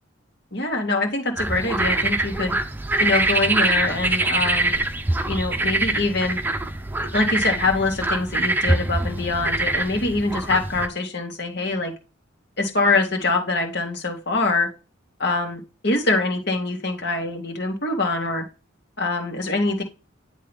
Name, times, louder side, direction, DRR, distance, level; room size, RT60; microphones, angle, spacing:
voice 1, 0.5-2.6 3.0-4.8 5.3-6.4 7.0-11.9 12.6-14.7 15.2-18.4 19.0-19.8, left 3 dB, 55° left, 2 dB, 2.3 m, -24 dB
sound 1, 1.4-10.9, right 2 dB, 10° right, 0.7 m, -24 dB
10.5 x 3.7 x 3.6 m, 0.30 s
head